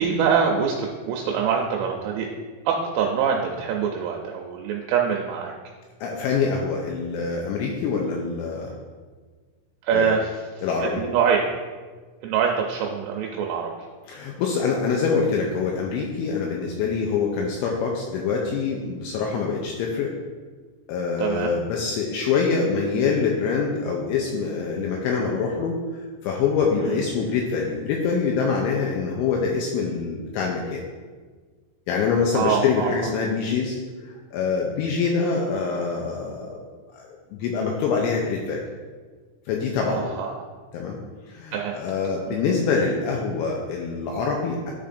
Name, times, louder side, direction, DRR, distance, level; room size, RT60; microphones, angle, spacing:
voice 1, 0.0-2.3 2.7-5.5 9.8-10.6 11.0-11.4 12.2-13.7 21.2-21.6 26.8-27.0 32.3-32.9 39.9-40.3 41.5-41.8 42.3-42.4, right 7 dB, 85° right, 0 dB, 2.9 m, -24 dB
voice 2, 6.0-8.7 9.9-10.1 10.6-11.0 14.1-20.1 20.9-25.8 26.2-30.8 31.9-33.8 34.0-36.6 36.9-38.6 39.5-40.2 40.7-41.0 41.3-44.7, left 5 dB, 85° left, 0 dB, 2.8 m, -25 dB
12.5 x 5.1 x 2.5 m, 1.5 s
omnidirectional pair, 5.8 m